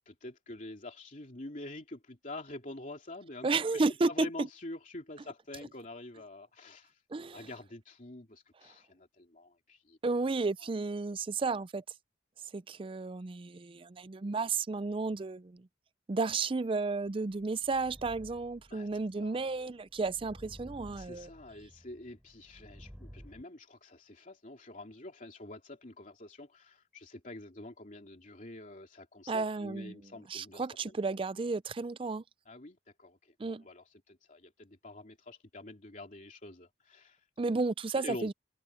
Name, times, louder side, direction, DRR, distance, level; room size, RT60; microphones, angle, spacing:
voice 1, 0.1-7.0 7.3-10.0 18.7-18.9 19.2-19.4 21.0-30.7 32.5-37.2 38.0-38.3, left 2 dB, 45° left, 2.9 m, -47 dB
voice 2, 3.4-4.3 7.1-7.5 10.0-11.8 12.5-15.7 16.1-21.3 29.3-32.2 33.4-33.6 37.4-38.3, right 3 dB, 30° right, 0.4 m, -33 dB
sound 1, 17.1-23.4, equal, 5° right, 4.4 m, -54 dB
head